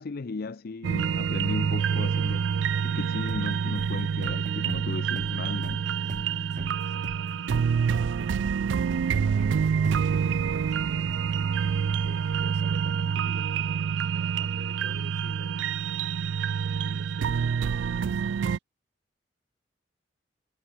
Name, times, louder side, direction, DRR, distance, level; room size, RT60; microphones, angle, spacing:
voice 1, 0.0-2.5 2.8-5.8, left 3 dB, 55° left, 0.5 m, -35 dB
sound 1, 0.8-18.6, right 7 dB, 85° right, 0.4 m, -27 dB
sound 2, 3.3-10.9, right 1 dB, 45° right, 2.3 m, -44 dB
voice 2, 6.5-7.4 7.9-9.6 9.8-11.3 12.0-15.9 16.6-18.6, right 1 dB, 65° right, 5.1 m, -49 dB
head